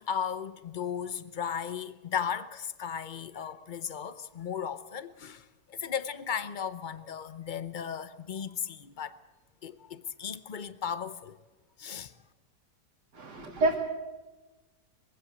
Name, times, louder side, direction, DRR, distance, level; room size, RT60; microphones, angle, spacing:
voice 1, 0.0-9.2 9.6-11.4 11.8-12.1, left 7 dB, 60° left, 0.5 m, -36 dB
voice 2, 13.1-13.8, right 2 dB, 70° right, 2.6 m, -27 dB
22.5 x 16.0 x 7.9 m
omnidirectional pair, 1.9 m